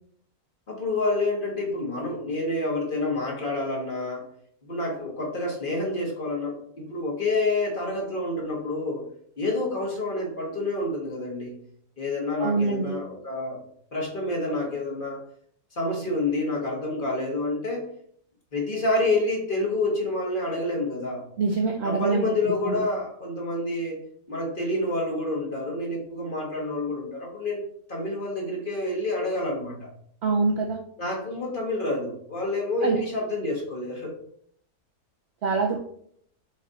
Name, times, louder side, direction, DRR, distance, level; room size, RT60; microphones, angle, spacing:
voice 1, 0.7-4.3 4.6-9.0 9.4-11.6 12.0-13.6 13.9-15.2 15.7-17.9 18.5-21.2 21.8-24.0 24.3-27.6 27.9-29.9 31.0-34.1, left 2 dB, 35° left, -1 dB, 1.2 m, -28 dB
voice 2, 12.4-13.0 21.4-22.7 30.2-30.8 32.8-33.0 35.4-35.8, right 4 dB, 65° right, 2 dB, 0.6 m, -25 dB
5.2 x 2.5 x 4.1 m, 0.63 s
omnidirectional pair, 1.6 m